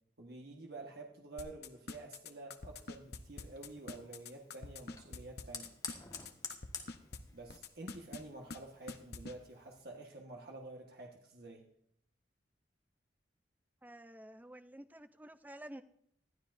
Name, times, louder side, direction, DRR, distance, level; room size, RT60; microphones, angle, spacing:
voice 1, 0.2-5.7 7.3-11.6, right 2 dB, 60° right, 0 dB, 1.4 m, -49 dB
sound 1, 1.4-7.2 7.5-8.2 8.5-8.6 8.9-9.3, left 4 dB, 60° left, 0.8 m, -45 dB
Fire, 2.6-9.8, left 4 dB, 20° left, 1.5 m, -51 dB
voice 2, 13.8-15.8, right 1 dB, 10° right, 10 dB, 0.5 m, -51 dB
20.0 x 12.5 x 2.6 m, 0.70 s
head